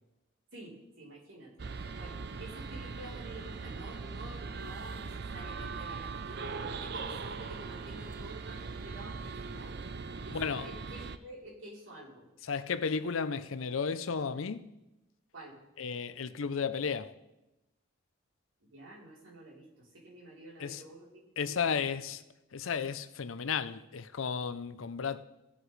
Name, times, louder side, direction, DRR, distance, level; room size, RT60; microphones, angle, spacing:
voice 1, 0.5-9.8 10.2-12.3 15.3-15.6 18.6-21.9, right 1 dB, 80° right, 3.7 m, -50 dB
sound 1, 1.6-11.2, right 4 dB, 50° right, 0.5 m, -40 dB
voice 2, 10.3-10.7 12.4-14.7 15.8-17.1 20.6-20.8 21.4-22.2 22.5-25.2, left 6 dB, 85° left, 0.6 m, -33 dB
19.0 x 7.9 x 3.2 m
head